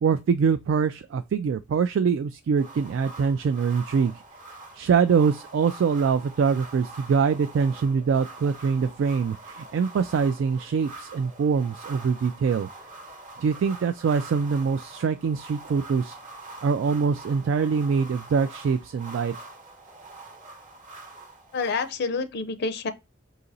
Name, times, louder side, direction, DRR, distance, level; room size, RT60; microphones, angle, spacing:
voice 1, 0.0-4.1 4.7-12.7 13.4-16.2 16.6-19.3, right 6 dB, 75° right, 0.3 m, -24 dB
sound 1, 2.6-21.9, right 2 dB, 40° right, 0.9 m, -44 dB
voice 2, 21.5-22.9, left 4 dB, 60° left, 0.5 m, -28 dB
4.0 x 2.8 x 3.9 m
head